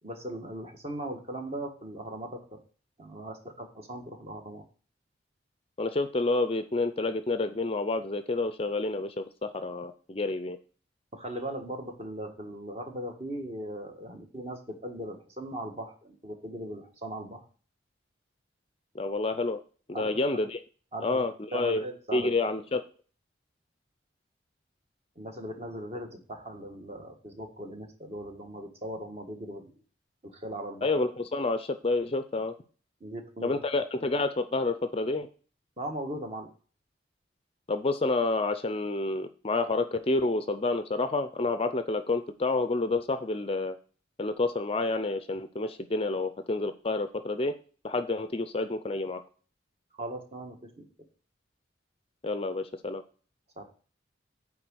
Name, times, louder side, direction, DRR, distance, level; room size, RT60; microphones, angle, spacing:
voice 1, 0.0-2.6 3.0-4.6 11.1-17.4 19.9-20.1 20.9-21.2 21.5-22.4 25.1-29.7 30.2-30.9 33.0-33.6 35.8-36.5 50.0-51.1 53.6-53.7, right 1 dB, 35° right, 4 dB, 1.5 m, -39 dB
voice 2, 5.8-10.6 18.9-19.6 19.9-20.6 21.0-21.8 22.1-22.8 30.8-32.5 33.4-35.3 37.7-43.8 44.2-47.5 47.8-49.2 52.2-53.0, left 3 dB, 30° left, 10 dB, 0.5 m, -29 dB
9.2 x 3.7 x 6.2 m, 0.39 s
head